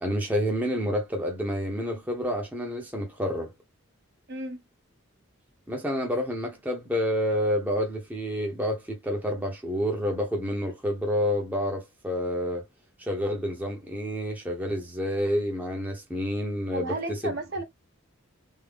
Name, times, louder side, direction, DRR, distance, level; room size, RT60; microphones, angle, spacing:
voice 1, 0.0-3.5 5.7-12.6 13.0-17.3, equal, 10° right, 0.8 m, -29 dB
voice 2, 16.7-17.6, right 2 dB, 55° right, 1.2 m, -33 dB
3.6 x 2.1 x 3.4 m
head